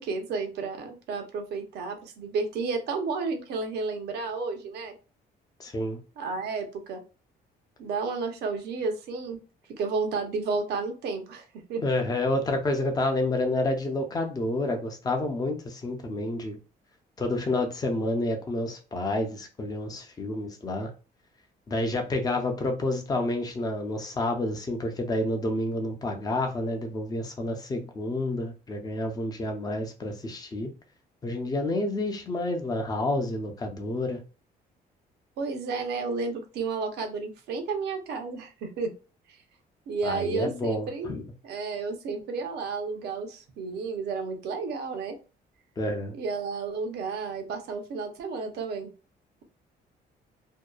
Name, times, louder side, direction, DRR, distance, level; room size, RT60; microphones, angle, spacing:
voice 1, 0.0-4.9 6.2-7.0 7.8-9.4 9.7-11.8 35.4-38.9 39.9-41.1 41.4-45.2 46.1-48.9, right 4 dB, 75° right, 0.7 m, -32 dB
voice 2, 5.6-6.0 11.8-16.6 17.2-20.9 21.7-30.7 31.2-34.2 40.0-41.2 45.8-46.1, left 2 dB, 25° left, 0.6 m, -29 dB
2.7 x 2.2 x 2.3 m
cardioid pair, 130°, 17 cm